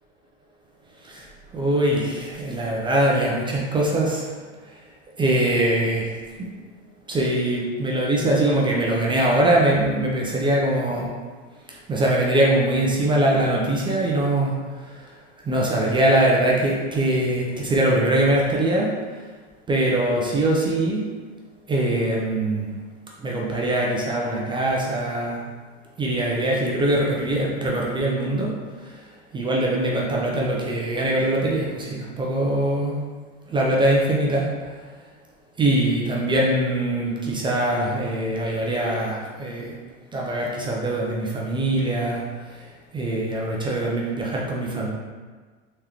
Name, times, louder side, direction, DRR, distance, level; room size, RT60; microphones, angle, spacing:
voice 1, 1.5-4.3 5.2-6.2 7.1-11.1 11.7-14.6 15.5-18.9 19.7-21.1 21.7-22.7 23.2-25.5 26.0-28.5 28.9-29.0 29.3-33.0 33.5-34.5 35.6-39.8 40.1-42.2 42.6-42.7 42.9-44.9, right 1 dB, 15° right, -3 dB, 0.3 m, -22 dB
3.7 x 2.8 x 3.3 m, 1.4 s
supercardioid pair, 120°, 39 cm